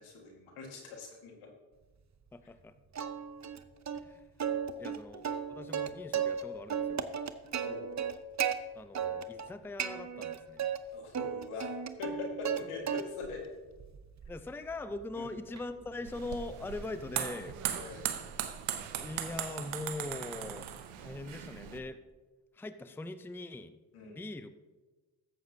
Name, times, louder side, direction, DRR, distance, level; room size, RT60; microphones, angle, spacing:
voice 1, 0.0-1.5 4.9-5.0 7.6-7.9 10.9-11.7 12.0-13.4 15.2-15.3 17.7-18.0 23.9-24.2, left 4 dB, 80° left, 1 dB, 1.9 m, -42 dB
voice 2, 2.3-2.7 3.9-7.1 8.7-10.6 14.3-17.6 19.0-20.7 21.0-22.0 22.5-23.8 24.0-24.5, left 2 dB, 5° left, 11 dB, 0.5 m, -42 dB
Plucked string instrument, 2.9-3.6 3.9-4.0 4.4-6.4 6.7-8.5 8.9-9.5 9.8-10.8 11.1-12.6 12.9-13.4 13.8-18.0, right 8 dB, 35° right, 0.7 m, -35 dB
sound 1, 16.1-21.8, right 10 dB, 90° right, 0.7 m, -38 dB
13.5 x 7.7 x 2.8 m, 1.2 s
supercardioid pair, 40°, 50 cm